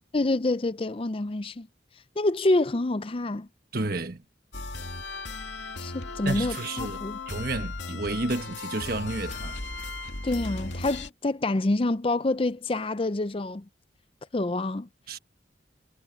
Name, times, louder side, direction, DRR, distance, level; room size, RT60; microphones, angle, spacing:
voice 1, 0.1-1.7 2.2-3.5 5.8-7.2 10.2-13.6 14.3-14.9, left 2 dB, 30° left, 0.5 m, -27 dB
voice 2, 3.7-4.2 6.2-7.0 7.3-9.6 15.1-15.2, right 2 dB, 50° right, 1.3 m, -31 dB
sound 1, 4.5-11.1, left 3 dB, 80° left, 2.3 m, -36 dB
head